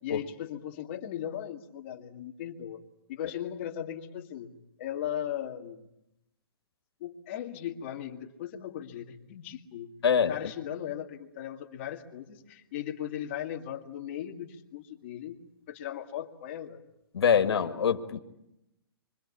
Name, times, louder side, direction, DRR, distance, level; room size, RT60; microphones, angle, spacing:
voice 1, 0.0-2.8 3.1-4.5 4.8-5.9 7.0-9.9 10.3-15.4 15.7-16.8, left 10 dB, 30° left, 2 dB, 2.0 m, -37 dB
voice 2, 10.0-10.5 17.1-18.2, left 7 dB, 85° left, 5 dB, 2.1 m, -24 dB
28.0 x 24.5 x 8.5 m, 0.86 s
hypercardioid pair, 180°, 13 cm